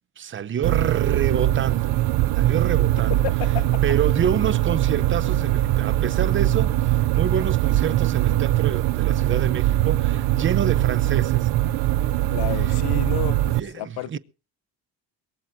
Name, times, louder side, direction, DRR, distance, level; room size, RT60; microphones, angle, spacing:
voice 1, 0.2-1.9 2.3-3.2 3.8-11.5 12.7-12.8 13.5-14.2, right 8 dB, 30° right, 0.7 m, -27 dB
sound 1, 0.6-13.6, right 15 dB, 90° right, 0.6 m, -21 dB
voice 2, 3.2-3.6 12.3-14.2, left 17 dB, 85° left, 0.8 m, -31 dB
22.5 x 15.5 x 2.7 m
cardioid pair, 135°, 38 cm